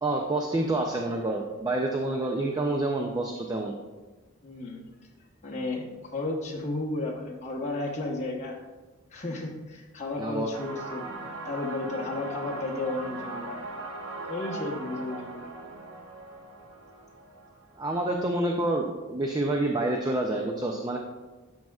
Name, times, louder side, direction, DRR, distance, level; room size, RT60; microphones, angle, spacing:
voice 1, 0.0-3.7 10.2-10.5 17.8-21.0, right 2 dB, 15° right, 1 dB, 0.4 m, -28 dB
voice 2, 4.4-4.8 5.4-8.6 9.1-11.1 11.4-13.6 14.3-15.5, left 2 dB, 30° left, -2 dB, 1.0 m, -33 dB
sound 1, 10.5-18.1, right 2 dB, 75° right, 1.2 m, -39 dB
10.5 x 6.3 x 2.4 m, 1.2 s
head